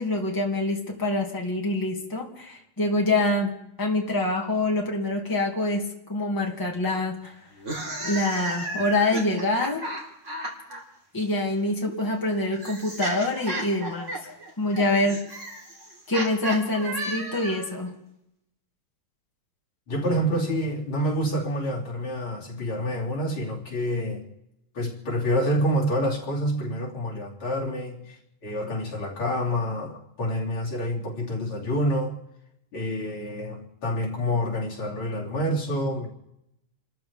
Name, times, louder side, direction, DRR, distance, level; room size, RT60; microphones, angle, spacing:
voice 1, 0.0-7.3 8.0-9.9 11.1-14.1 14.6-15.4 16.1-18.0, left 2 dB, 10° left, -1 dB, 2.3 m, -26 dB
sound 1, 7.5-10.8 11.8-17.7, right 1 dB, 35° right, 3.9 m, -34 dB
voice 2, 19.9-24.3 24.7-32.1 32.7-36.1, equal, 75° left, -4 dB, 3.9 m, -27 dB
29.5 x 14.0 x 3.5 m, 0.82 s
omnidirectional pair, 2.3 m